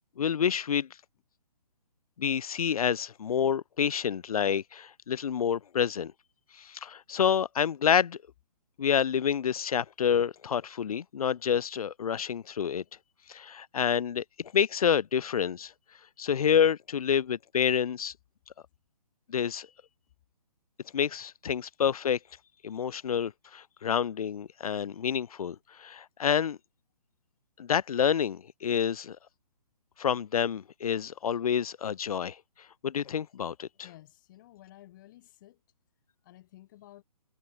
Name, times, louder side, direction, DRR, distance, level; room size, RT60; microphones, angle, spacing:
voice 1, 0.2-0.9 2.2-6.1 6.6-8.2 8.8-12.8 13.3-15.7 16.2-18.1 19.3-19.7 20.9-22.2 22.6-26.6 27.6-29.2 30.0-32.4 32.8-33.7, left 8 dB, 60° left, 0.8 m, -28 dB
voice 2, 33.8-35.6 36.2-37.0, left 15 dB, 30° left, 5.8 m, -53 dB
hypercardioid pair, 165°, 21 cm